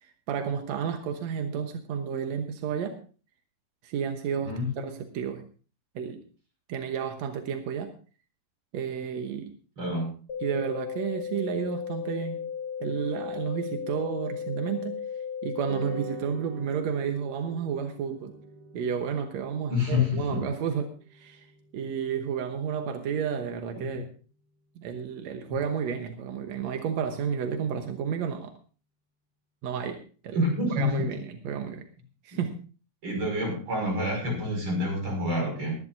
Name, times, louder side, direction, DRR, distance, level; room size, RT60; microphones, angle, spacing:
voice 1, 0.0-2.9 3.8-5.4 5.9-6.2 6.7-7.9 8.7-9.5 10.4-12.4 12.8-15.0 15.4-18.3 18.7-21.5 21.7-24.1 24.8-28.5 29.6-30.4 30.7-31.9 32.2-32.6, right 7 dB, 70° right, 5 dB, 1.7 m, -31 dB
voice 2, 9.8-10.1 19.7-20.4 23.8-23.9 30.3-31.1 32.3-32.4 33.0-35.8, left 2 dB, 30° right, 0 dB, 6.3 m, -27 dB
sound 1, 10.3-16.3, left 7 dB, 50° left, 3.0 m, -35 dB
sound 2, 15.7-24.2, right 4 dB, 85° right, 3.7 m, -47 dB
21.5 x 11.0 x 2.6 m, 0.38 s
omnidirectional pair, 4.5 m